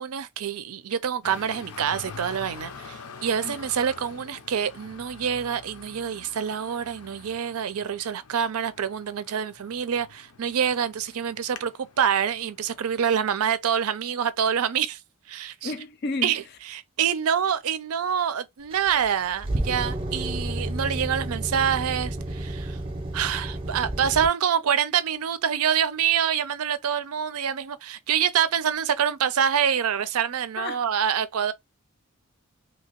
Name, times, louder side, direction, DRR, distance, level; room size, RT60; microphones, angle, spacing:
voice 1, 0.0-11.7 12.0-15.0 15.3-15.7 16.2-16.4 16.7-22.8 23.1-31.5, right 8 dB, 80° right, 0.4 m, -26 dB
Traffic noise roadway noise, 1.2-13.0, left 5 dB, 90° left, 0.6 m, -45 dB
voice 2, 15.6-16.4 30.6-30.8, left 3 dB, 45° left, 0.4 m, -31 dB
sound 1, 18.7-24.3, right 1 dB, 25° right, 0.6 m, -31 dB
2.8 x 2.8 x 2.9 m
head